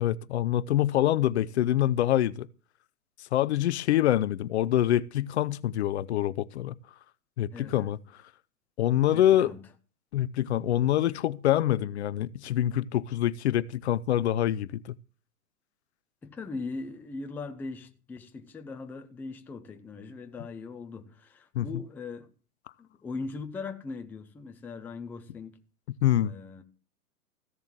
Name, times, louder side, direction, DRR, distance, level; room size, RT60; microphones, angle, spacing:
voice 1, 0.0-2.5 3.3-6.7 7.4-8.0 8.8-9.5 10.1-14.8 21.5-21.7 26.0-26.3, left 12 dB, 45° left, 0.6 m, -25 dB
voice 2, 7.5-7.9 9.1-9.6 16.2-22.3 22.8-25.6 26.2-26.6, left 4 dB, 5° left, 0.5 m, -40 dB
15.0 x 7.1 x 7.3 m
hypercardioid pair, 125°, 46 cm